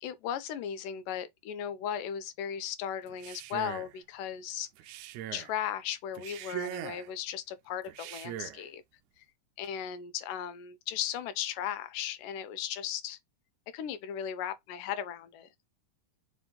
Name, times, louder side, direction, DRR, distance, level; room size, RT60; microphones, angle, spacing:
voice 1, 0.0-4.7 5.3-8.8 9.6-13.2 13.7-15.5, left 9 dB, 80° left, 2.4 m, -36 dB
Male speech man speaking, 3.1-4.0 4.8-5.5 6.1-7.1 7.9-8.6, right 13 dB, 80° right, 1.7 m, -41 dB
5.1 x 3.5 x 5.5 m
omnidirectional pair, 4.0 m